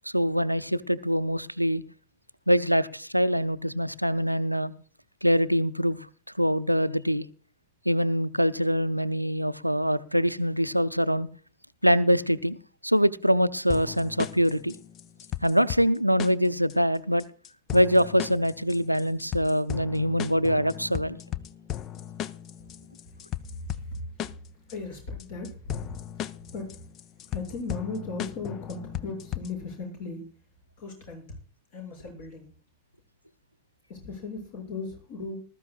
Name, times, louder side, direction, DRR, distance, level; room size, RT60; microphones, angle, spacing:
voice 1, 0.1-1.8 2.5-4.7 5.2-6.0 6.4-7.2 7.9-11.3 11.8-14.7 15.4-17.2 17.7-21.2, equal, 90° right, 13 dB, 0.6 m, -24 dB
sound 1, 13.7-29.7, left 11 dB, 35° left, 0.6 m, -37 dB
voice 2, 23.0-24.0 24.7-30.2 30.8-31.3 31.7-32.5 33.9-35.4, left 3 dB, 55° left, 2 dB, 6.6 m, -37 dB
20.0 x 13.0 x 2.4 m, 0.38 s
figure-of-eight pair, 90°, 0 cm